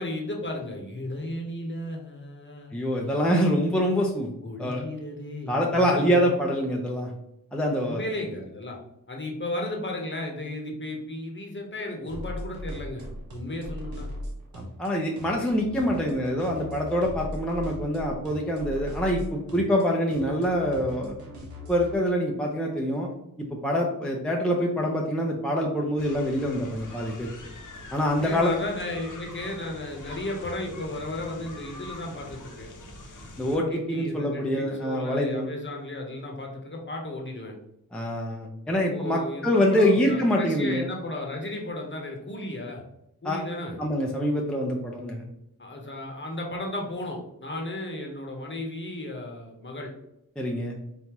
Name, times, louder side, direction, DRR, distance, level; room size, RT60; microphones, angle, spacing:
voice 1, 0.0-2.8 4.4-6.3 7.8-8.8 9.1-13.1 13.3-14.1 28.2-32.7 33.3-37.6 38.6-42.8 43.2-43.8 45.6-49.9, left 1 dB, 30° left, 1 dB, 1.0 m, -34 dB
voice 2, 2.7-4.3 4.6-4.8 5.5-7.1 7.5-8.0 14.5-21.2 21.7-23.1 23.6-27.3 27.9-28.5 33.4-35.5 37.9-40.9 43.2-43.4 43.8-45.3 50.4-50.8, equal, 5° left, -1 dB, 0.5 m, -25 dB
sound 1, 12.1-22.0, left 1 dB, 80° right, 1.1 m, -38 dB
sound 2, 26.0-33.6, left 1 dB, 60° left, 0.9 m, -43 dB
4.1 x 3.7 x 3.0 m, 0.82 s
wide cardioid pair, 115°, 36 cm